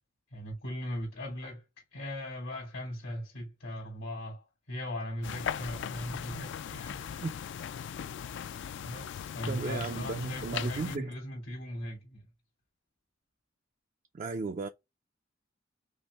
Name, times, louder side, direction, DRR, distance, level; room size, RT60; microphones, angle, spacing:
voice 1, 0.3-1.6 1.9-7.2 8.8-12.3, left 1 dB, 85° left, 2.3 m, -39 dB
sound 1, 5.2-11.0, left 8 dB, 65° left, 0.3 m, -39 dB
voice 2, 9.5-11.2 14.1-14.7, right 4 dB, 40° right, 0.4 m, -35 dB
5.3 x 2.0 x 3.3 m
head